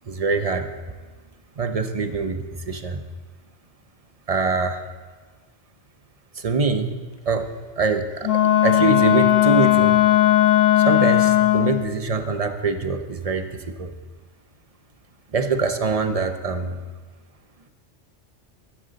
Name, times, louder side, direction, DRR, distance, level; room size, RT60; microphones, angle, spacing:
voice 1, 0.1-0.7 1.6-3.0 4.3-4.8 6.3-7.0 7.3-7.5 7.8-8.3 8.6-10.0 10.8-13.9 15.3-16.8, right 4 dB, 35° right, 7 dB, 0.8 m, -24 dB
Wind instrument woodwind instrument, 8.2-11.9, left 13 dB, 90° left, 1.2 m, -17 dB
15.0 x 13.5 x 4.1 m, 1.4 s
omnidirectional pair, 1.3 m